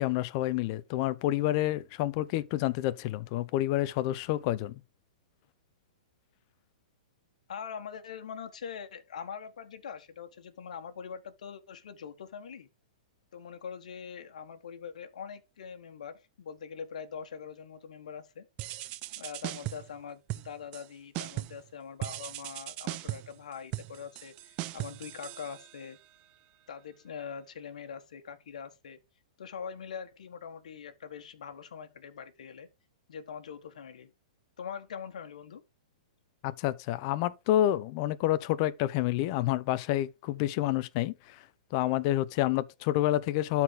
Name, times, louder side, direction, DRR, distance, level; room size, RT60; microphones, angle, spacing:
voice 1, 0.0-4.8 36.4-41.4 41.7-43.6, left 14 dB, 40° left, 0.8 m, -28 dB
voice 2, 7.5-12.7 13.3-18.4 19.2-26.0 26.7-29.0 29.4-32.7 33.1-34.1 34.6-35.6, left 7 dB, 75° left, 1.5 m, -43 dB
sound 1, 18.6-19.9 20.3-20.9 21.1-21.7 22.0-26.0, right 17 dB, 35° right, 0.6 m, -38 dB
12.0 x 4.4 x 3.8 m
hypercardioid pair, 140°, 4 cm